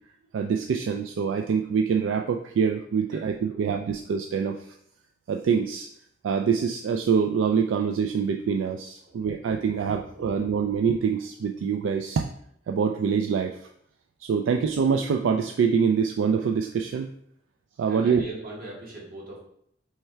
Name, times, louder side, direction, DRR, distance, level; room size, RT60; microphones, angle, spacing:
voice 1, 0.3-4.7 5.3-5.9 6.2-12.3 12.7-13.6 14.2-17.1 17.8-18.2, right 6 dB, 75° right, 3 dB, 0.3 m, -25 dB
voice 2, 3.0-3.6 9.0-9.7 10.0-10.5 17.9-19.4, right 2 dB, 50° right, -4 dB, 1.5 m, -42 dB
3.4 x 3.3 x 4.4 m, 0.68 s
head